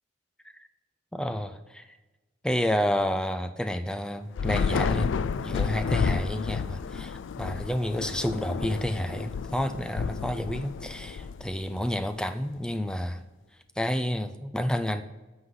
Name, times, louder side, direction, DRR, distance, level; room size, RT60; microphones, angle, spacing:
voice 1, 1.1-1.9 2.4-5.1 5.4-13.2 13.8-15.0, equal, 5° left, 9 dB, 0.4 m, -30 dB
Thunder / Rain, 4.3-11.9, left 6 dB, 70° left, 0.4 m, -31 dB
13.0 x 8.0 x 3.9 m, 1.2 s
head